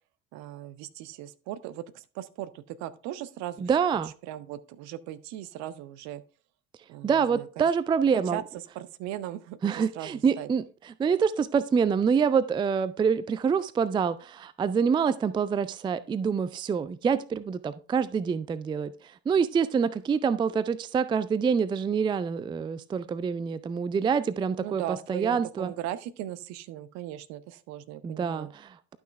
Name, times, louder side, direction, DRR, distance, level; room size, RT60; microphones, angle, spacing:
voice 1, 0.3-3.7 4.0-6.2 6.9-7.6 8.1-8.4 8.7-10.5 24.6-28.5, right 13 dB, 55° right, 0.7 m, -38 dB
voice 2, 3.6-4.1 7.0-8.4 9.6-10.6 11.0-25.7 28.0-29.0, right 6 dB, 15° right, 0.4 m, -26 dB
11.5 x 6.1 x 3.3 m
figure-of-eight pair, 60°, 34 cm